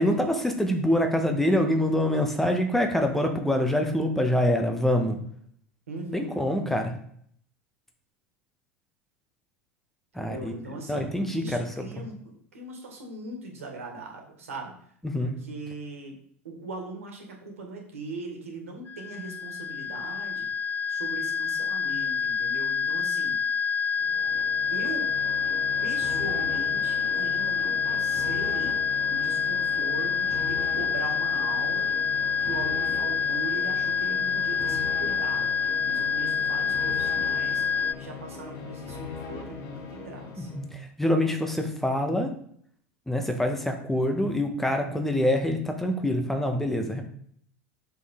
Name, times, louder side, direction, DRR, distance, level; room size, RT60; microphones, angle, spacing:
voice 1, 0.0-5.2 6.1-6.9 10.1-10.5 10.9-11.7 15.0-15.3 40.4-42.3 43.1-47.0, left 1 dB, 5° left, 4 dB, 1.5 m, -25 dB
voice 2, 5.9-6.4 10.2-14.9 15.2-16.2 16.4-20.5 20.9-23.4 24.3-25.1 25.8-28.8 29.1-31.9 32.4-35.5 35.8-37.6 37.9-40.5, right 3 dB, 80° right, 2 dB, 2.0 m, -40 dB
sound 1, 18.9-37.9, left 6 dB, 25° left, 0.4 m, -27 dB
sound 2, 24.0-40.8, left 5 dB, 45° left, 1.7 m, -40 dB
6.6 x 5.3 x 3.9 m, 0.63 s
hypercardioid pair, 80°, 7 cm